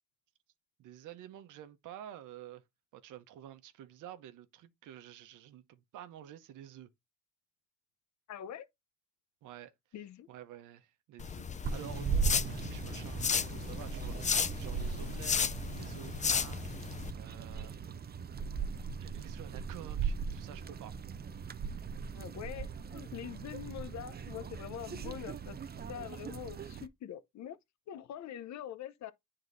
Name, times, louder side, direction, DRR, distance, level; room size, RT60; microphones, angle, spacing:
voice 1, 0.8-2.6 2.9-6.9 9.4-9.7 10.3-16.6 17.1-18.0 18.9-21.0, right 11 dB, 85° right, 0.9 m, -50 dB
voice 2, 8.3-8.7 9.9-10.3 22.1-25.6 25.9-27.6 27.9-29.1, left 10 dB, 65° left, 0.8 m, -44 dB
sound 1, 11.2-17.1, left 6 dB, 25° left, 0.4 m, -34 dB
sound 2, 11.6-26.9, right 6 dB, 30° right, 0.6 m, -39 dB
9.4 x 3.9 x 2.6 m
cardioid pair, 90°, 30 cm